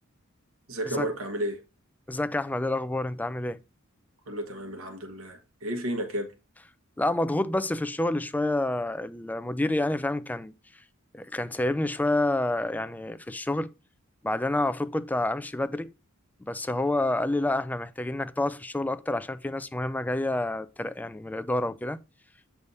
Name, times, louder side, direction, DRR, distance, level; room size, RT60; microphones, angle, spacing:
voice 1, 0.7-1.6 4.3-6.3, right 1 dB, 75° right, 1.3 m, -32 dB
voice 2, 2.1-3.6 7.0-10.5 11.1-13.7 14.2-15.9 16.5-22.0, left 1 dB, 10° left, 0.4 m, -28 dB
8.2 x 3.5 x 4.0 m
head